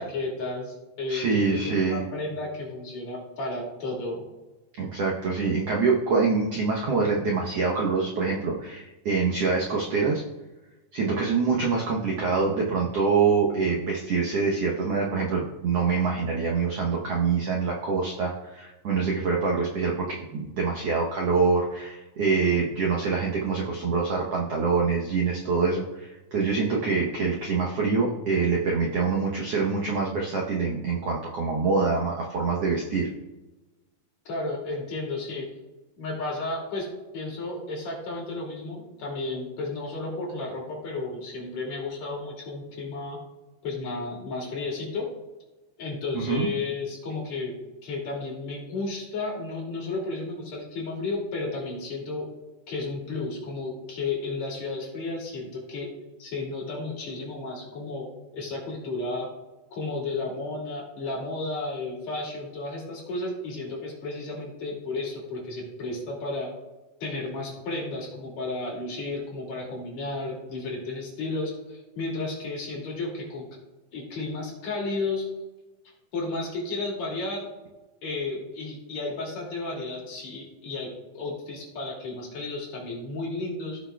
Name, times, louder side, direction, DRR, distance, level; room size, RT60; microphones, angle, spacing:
voice 1, 0.0-4.3 34.3-35.5 36.0-36.9 37.1-43.2 43.6-45.1 45.8-47.5 47.8-52.2 52.7-55.9 56.2-58.1 58.3-59.3 59.7-66.5 67.0-73.5 73.9-75.3 76.1-77.5 78.0-83.8, left 2 dB, 55° left, -3 dB, 3.6 m, -33 dB
voice 2, 1.1-2.0 4.8-10.2 10.9-33.1 46.1-46.5, right 4 dB, 70° right, -2 dB, 1.5 m, -25 dB
16.0 x 6.2 x 2.3 m, 1.1 s
omnidirectional pair, 4.0 m